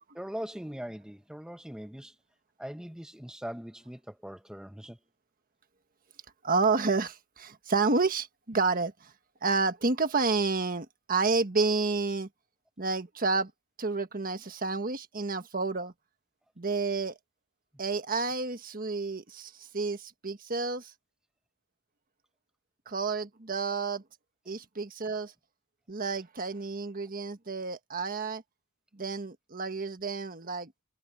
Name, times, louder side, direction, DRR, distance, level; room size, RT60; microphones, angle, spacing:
voice 1, 0.1-2.2 2.6-5.0, equal, 5° right, 0.7 m, -41 dB
voice 2, 6.4-9.1 9.4-12.3 12.8-13.5 13.8-15.9 16.6-17.2 17.8-20.9 22.9-24.0 24.5-25.3 25.9-28.4 28.9-30.8, right 4 dB, 45° right, 1.5 m, -30 dB
head